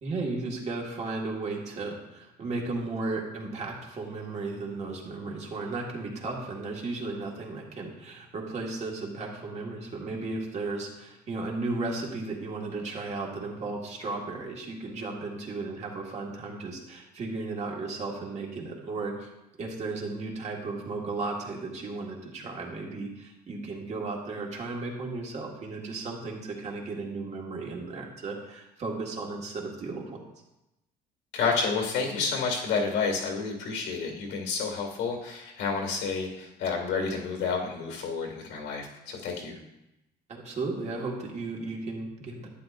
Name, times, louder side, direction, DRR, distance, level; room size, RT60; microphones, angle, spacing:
voice 1, 0.0-19.3 19.6-30.2 40.3-42.5, right 3 dB, 40° right, -1 dB, 1.8 m, -35 dB
voice 2, 31.3-39.6, left 5 dB, 85° left, 2 dB, 2.2 m, -30 dB
11.0 x 8.8 x 2.6 m, 0.93 s
cardioid pair, 135°, 18 cm